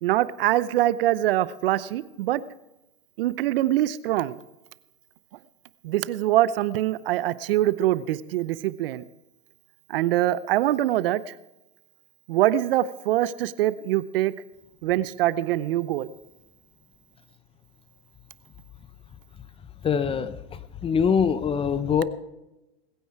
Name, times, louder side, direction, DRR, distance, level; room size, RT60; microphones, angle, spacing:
voice 1, 0.0-2.4 3.2-4.4 5.8-9.0 9.9-11.3 12.3-14.3 14.8-16.1, right 14 dB, 60° right, 17 dB, 0.8 m, -24 dB
voice 2, 19.8-22.0, left 7 dB, 15° left, 13 dB, 0.8 m, -24 dB
21.0 x 9.2 x 4.8 m, 0.95 s
hypercardioid pair, 115°, 31 cm